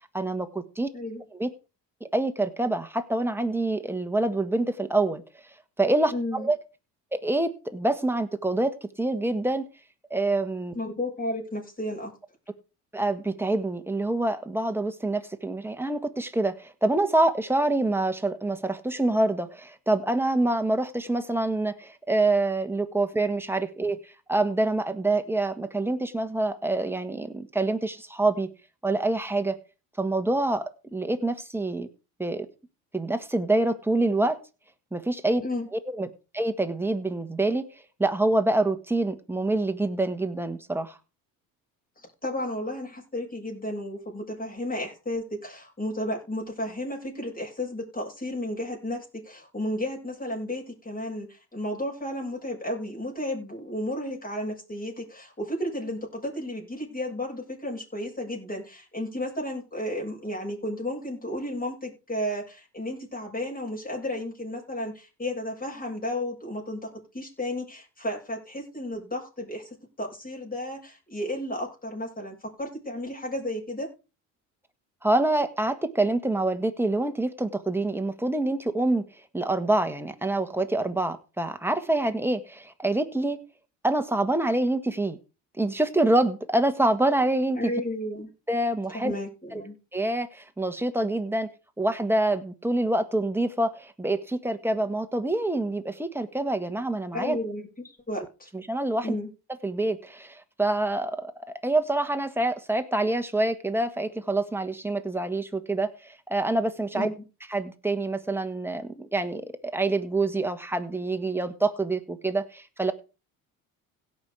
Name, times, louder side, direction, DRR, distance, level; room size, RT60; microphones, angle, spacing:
voice 1, 0.1-0.9 1.4-1.5 2.0-5.2 5.8-6.6 7.1-9.6 10.1-10.7 12.9-28.5 28.8-29.6 30.0-31.9 32.2-32.4 32.9-34.4 34.9-35.4 35.7-36.1 36.3-41.0 75.0-79.1 79.3-83.4 83.8-85.2 85.6-87.6 88.5-89.1 89.5-89.6 89.9-91.5 91.8-97.4 98.5-99.1 99.6-101.3 101.6-107.1 107.5-112.9, right 2 dB, 5° right, 7 dB, 1.6 m, -26 dB
voice 2, 0.9-1.2 6.1-6.5 10.7-12.1 35.4-35.7 42.0-69.6 70.0-73.9 87.6-88.3 88.9-89.8 97.1-98.5 99.0-99.3 106.9-107.1, left 1 dB, 20° left, -1 dB, 7.5 m, -33 dB
17.0 x 5.8 x 4.8 m, 0.32 s
supercardioid pair, 80°, 39 cm